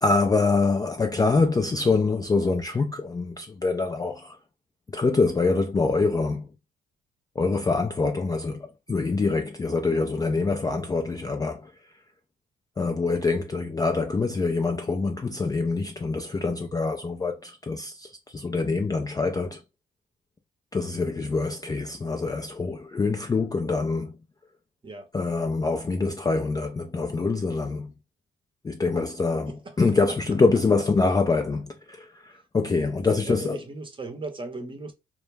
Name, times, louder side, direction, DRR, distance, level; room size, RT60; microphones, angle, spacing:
voice 1, 0.0-4.4 4.9-6.5 7.4-11.7 12.8-19.6 20.7-24.1 25.1-27.9 28.6-29.5 29.8-33.6, left 3 dB, 20° left, 0.3 m, -25 dB
voice 2, 29.5-29.8 30.1-30.2 33.2-34.9, right 3 dB, 25° right, 0.7 m, -37 dB
2.1 x 2.0 x 3.2 m
cardioid pair, 90°, 20 cm